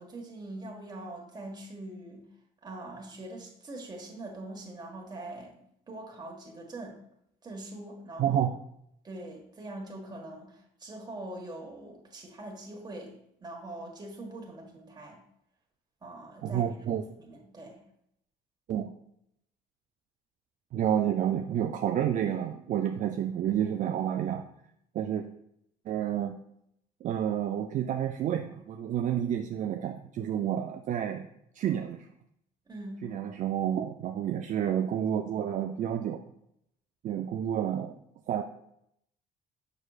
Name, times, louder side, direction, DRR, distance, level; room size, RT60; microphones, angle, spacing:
voice 1, 0.0-2.3 2.6-7.0 7.4-8.4 9.0-15.2 16.0-16.7 17.2-17.8 32.7-33.1, right 2 dB, 25° right, 0 dB, 1.6 m, -43 dB
voice 2, 8.2-8.5 16.4-17.0 18.7-18.9 20.7-24.5 24.9-25.3 25.9-26.4 27.0-31.3 31.6-32.1 33.0-36.2 37.0-38.0 38.3-38.4, right 10 dB, 50° right, 6 dB, 0.4 m, -29 dB
6.4 x 6.2 x 2.4 m, 0.74 s
cardioid pair, 110°, 17 cm